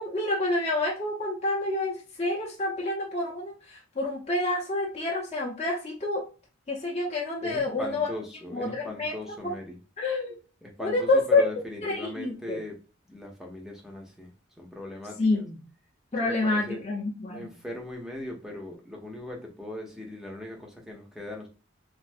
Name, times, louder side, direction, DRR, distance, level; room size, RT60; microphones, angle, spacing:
voice 1, 0.0-6.3 6.7-8.1 8.5-9.6 10.0-10.4 10.8-11.4 11.8-12.6 15.2-15.6 16.1-17.5, left 2 dB, 35° left, 0.7 m, -28 dB
voice 2, 7.4-9.8 10.6-12.7 13.1-14.3 14.6-15.2 16.2-16.8 17.3-21.5, left 1 dB, ahead, 0.7 m, -39 dB
3.4 x 2.5 x 2.6 m
head